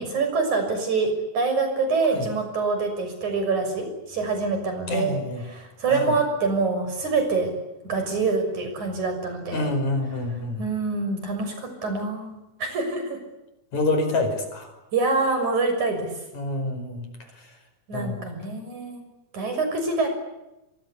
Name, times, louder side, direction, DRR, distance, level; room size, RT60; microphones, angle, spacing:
voice 1, 0.0-7.5 7.9-9.7 10.6-13.2 14.9-16.1 17.9-19.0 19.3-20.1, right 4 dB, 75° right, 6 dB, 7.8 m, -25 dB
voice 2, 4.9-5.4 5.9-6.1 9.5-10.7 13.7-14.7 16.3-17.1 17.9-18.2, left 2 dB, 70° left, 6 dB, 6.7 m, -27 dB
25.5 x 24.5 x 8.5 m, 0.95 s
omnidirectional pair, 3.4 m